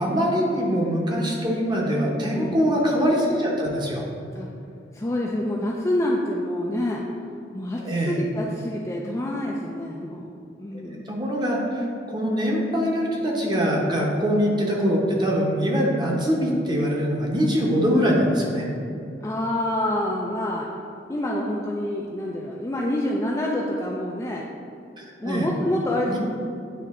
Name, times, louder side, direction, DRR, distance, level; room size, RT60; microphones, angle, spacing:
voice 1, 0.0-4.0 7.8-8.2 11.1-18.7 25.0-25.5 26.1-26.2, equal, 25° right, -2 dB, 0.9 m, -23 dB
voice 2, 2.3-2.8 4.4-4.5 4.9-7.0 7.5-10.2 10.6-11.2 19.2-20.7 21.1-24.4 25.2-26.2, left 1 dB, 15° left, -3 dB, 0.4 m, -27 dB
9.4 x 3.3 x 3.7 m, 2.6 s
head